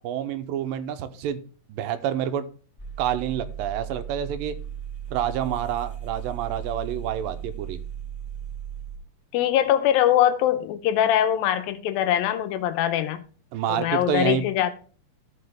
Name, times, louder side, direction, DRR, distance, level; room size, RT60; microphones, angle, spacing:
voice 1, 0.0-1.4 1.7-2.5 3.0-4.6 5.1-7.8 13.5-14.5, right 10 dB, 80° right, 2.3 m, -28 dB
sound 1, 2.8-9.0, right 9 dB, 15° left, 2.8 m, -36 dB
voice 2, 9.3-13.2 13.7-14.7, left 11 dB, 90° left, 2.5 m, -22 dB
13.5 x 5.4 x 3.5 m
omnidirectional pair, 4.1 m